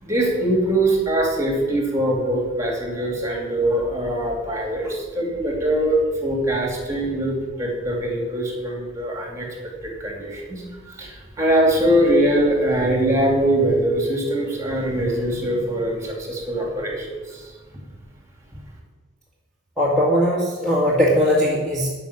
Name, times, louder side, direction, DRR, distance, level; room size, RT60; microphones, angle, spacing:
voice 1, 0.0-9.5 9.8-17.5, right 1 dB, 15° right, 0 dB, 2.8 m, -22 dB
voice 2, 19.8-21.9, equal, 5° left, -7 dB, 2.1 m, -19 dB
13.0 x 5.8 x 8.8 m, 1.4 s
head